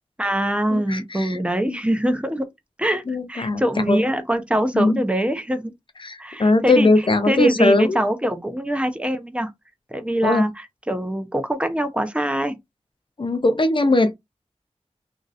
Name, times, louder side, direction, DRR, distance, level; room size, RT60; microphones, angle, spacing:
voice 1, 0.2-2.5 2.8-3.0 3.3-5.7 6.2-9.5 9.9-12.6, right 1 dB, 10° right, 0.7 m, -23 dB
voice 2, 0.7-1.4 1.7-1.8 3.1-4.0 4.7-5.0 6.0-8.0 10.2-10.5 13.2-14.1, left 2 dB, 45° left, 0.5 m, -19 dB
2.9 x 2.6 x 2.4 m
wide cardioid pair, 75°, 12 cm